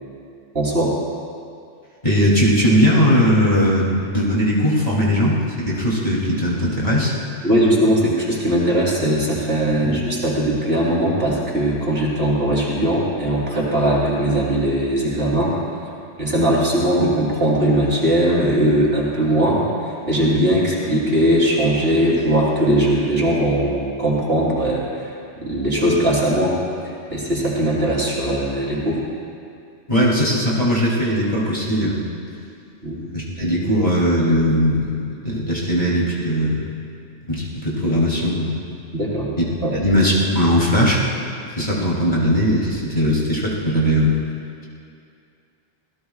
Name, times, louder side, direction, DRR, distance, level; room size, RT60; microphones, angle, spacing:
voice 1, 0.5-0.9 7.4-15.6 16.2-25.1 25.4-29.0 32.8-33.0 38.9-39.3 39.6-39.7, right 1 dB, 50° right, -5 dB, 3.7 m, -19 dB
voice 2, 2.0-7.1 9.7-9.9 29.9-32.0 32.9-36.6 37.3-38.6 39.4-39.5 39.7-41.0 41.6-44.1, equal, 30° left, -6 dB, 3.0 m, -19 dB
sound 1, 9.8-13.0, right 4 dB, 85° right, 1.6 m, -36 dB
26.5 x 17.5 x 2.4 m, 2.5 s
omnidirectional pair, 1.3 m